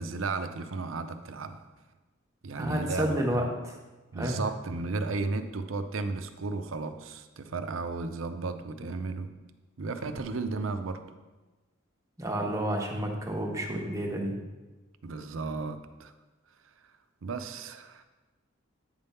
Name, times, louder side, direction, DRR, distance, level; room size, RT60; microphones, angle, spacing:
voice 1, 0.0-1.6 2.4-3.5 4.1-9.3 9.8-11.0 15.0-16.1 17.2-18.0, right 3 dB, 75° right, 9 dB, 0.5 m, -34 dB
voice 2, 2.5-3.8 4.1-4.4 12.2-14.3, right 1 dB, 15° right, 0 dB, 1.0 m, -30 dB
8.9 x 3.5 x 5.5 m, 1.2 s
head